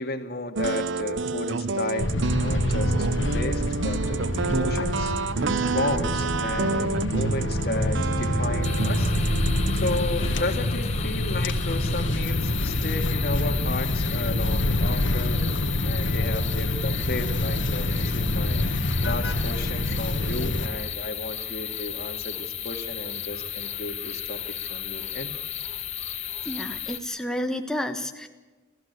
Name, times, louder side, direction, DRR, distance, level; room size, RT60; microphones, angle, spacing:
voice 1, 0.0-5.1 5.7-9.1 9.7-15.4 15.8-18.7 19.0-25.3, left 2 dB, 55° left, 6 dB, 2.1 m, -33 dB
sound 1, 0.6-10.0, right 4 dB, 80° right, 0.7 m, -28 dB
sound 2, 2.0-20.7, left 1 dB, 85° left, 1.6 m, -26 dB
sound 3, 8.6-27.0, left 10 dB, 35° left, 1.4 m, -34 dB
voice 2, 26.4-28.3, left 1 dB, 5° left, 5 dB, 1.3 m, -30 dB
28.5 x 15.0 x 8.3 m, 1.3 s
head